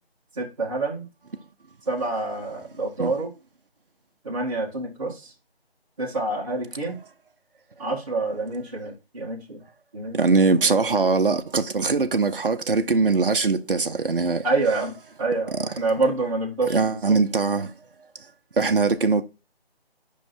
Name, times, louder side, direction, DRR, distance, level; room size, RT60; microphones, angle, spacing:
voice 1, 0.4-1.1 1.9-3.3 4.2-5.3 6.0-7.0 7.8-9.6 9.9-10.3 10.6-10.8 14.4-17.3, right 3 dB, 30° right, 1.8 m, -27 dB
voice 2, 10.1-14.4 15.5-15.6 16.7-17.7 18.6-19.2, right 4 dB, 60° right, 0.9 m, -21 dB
5.6 x 5.2 x 4.2 m
figure-of-eight pair, 165°, 31 cm